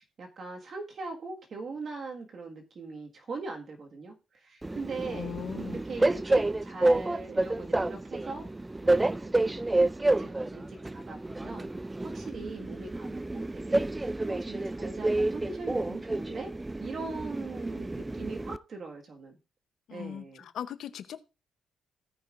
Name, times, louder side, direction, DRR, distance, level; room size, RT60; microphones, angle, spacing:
voice 1, 0.0-5.3 5.7-11.7 12.0-13.2 13.5-16.5 16.8-19.4 19.9-20.4, right 3 dB, 50° right, 1.6 m, -41 dB
Train, 4.6-18.6, right 2 dB, 15° right, 0.3 m, -29 dB
voice 2, 5.1-5.8 19.9-21.2, left 9 dB, 70° left, 0.7 m, -39 dB
16.5 x 5.7 x 2.5 m
cardioid pair, 90°, 0 cm